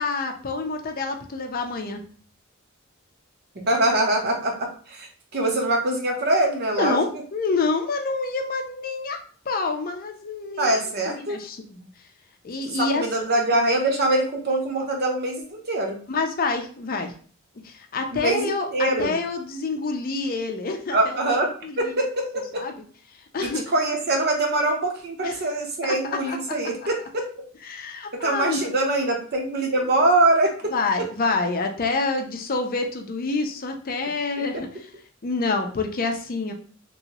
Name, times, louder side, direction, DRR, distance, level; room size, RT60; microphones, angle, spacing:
voice 1, 0.0-2.0 6.8-9.2 9.5-11.9 12.4-13.1 16.1-17.1 17.6-21.2 21.6-21.9 22.6-22.8 23.3-23.7 25.2-25.4 25.8-26.6 27.6-28.7 30.7-34.9 35.2-36.5, left 3 dB, 45° left, 4 dB, 0.5 m, -27 dB
voice 2, 3.7-5.1 5.3-7.0 10.6-11.4 12.8-16.0 18.1-19.1 20.9-22.6 23.4-27.3 28.1-30.7 34.4-34.5, right 2 dB, 50° right, 2 dB, 0.8 m, -23 dB
3.0 x 2.7 x 2.9 m, 0.43 s
head